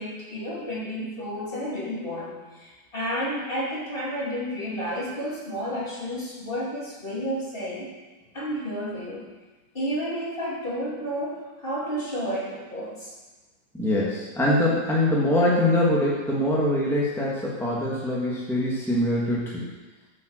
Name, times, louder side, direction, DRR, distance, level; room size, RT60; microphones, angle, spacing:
voice 1, 0.0-7.9 8.3-9.3 9.7-13.1, equal, 30° left, -6 dB, 2.8 m, -31 dB
voice 2, 13.7-19.7, left 1 dB, ahead, -6 dB, 1.5 m, -23 dB
8.3 x 7.5 x 6.5 m, 1.2 s
omnidirectional pair, 1.9 m